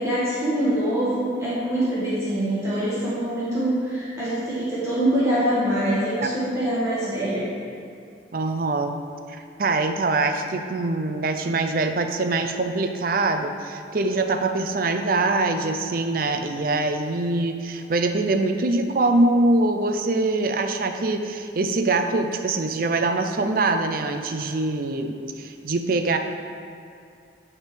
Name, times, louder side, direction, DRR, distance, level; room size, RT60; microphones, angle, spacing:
voice 1, 0.0-7.5, right 1 dB, 15° right, -10 dB, 1.5 m, -24 dB
voice 2, 8.3-8.9 9.6-26.2, right 2 dB, 50° right, 6 dB, 0.5 m, -23 dB
9.0 x 3.7 x 5.0 m, 2.5 s
head